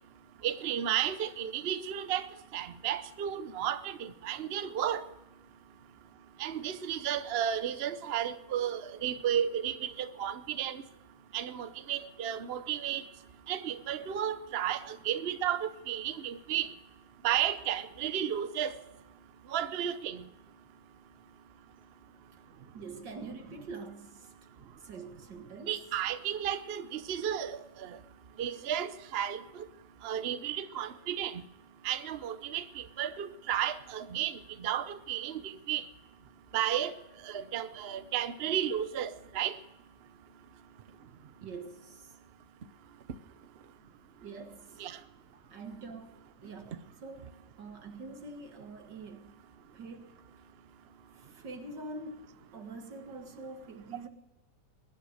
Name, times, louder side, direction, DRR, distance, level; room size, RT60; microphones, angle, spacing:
voice 1, 0.4-2.3 2.5-5.0 6.4-10.8 11.3-13.0 13.5-16.7 17.2-18.7 19.5-20.2 25.7-28.0 28.4-29.4 30.0-31.4 31.8-35.8 36.5-36.9 37.2-39.6 44.8-45.0, right 10 dB, 45° right, 0.8 m, -33 dB
voice 2, 22.7-24.3 24.8-25.8 30.8-31.0 41.4-42.2 44.2-44.9 45.5-46.1 46.4-49.3 49.7-50.2 51.1-54.1, right 3 dB, 85° right, 2.5 m, -45 dB
22.0 x 10.0 x 6.5 m
omnidirectional pair, 1.8 m